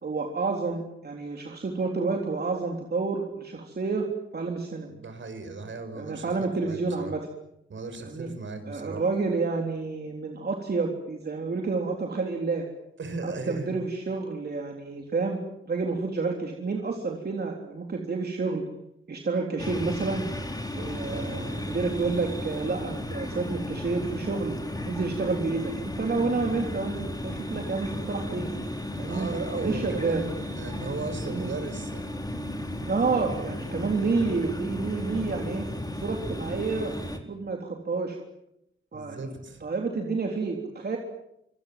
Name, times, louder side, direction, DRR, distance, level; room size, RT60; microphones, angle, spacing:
voice 1, 0.0-4.1 4.3-4.9 5.9-7.3 8.0-8.3 8.7-12.7 13.2-15.4 15.7-18.7 19.1-20.3 20.7-24.6 24.9-28.5 29.0-29.3 29.6-30.2 31.2-31.5 32.9-35.7 36.0-37.0 37.3-38.2 38.9-39.3 39.6-41.0, right 4 dB, 50° right, 2 dB, 3.6 m, -29 dB
voice 2, 5.0-7.1 7.7-9.1 13.0-13.8 21.0-21.6 29.1-32.1 33.2-33.3 38.9-39.6, right 3 dB, 65° right, 8 dB, 6.0 m, -36 dB
sound 1, 19.6-37.2, left 1 dB, 20° left, 4.2 m, -34 dB
26.0 x 26.0 x 7.7 m, 0.82 s
wide cardioid pair, 120°, 21 cm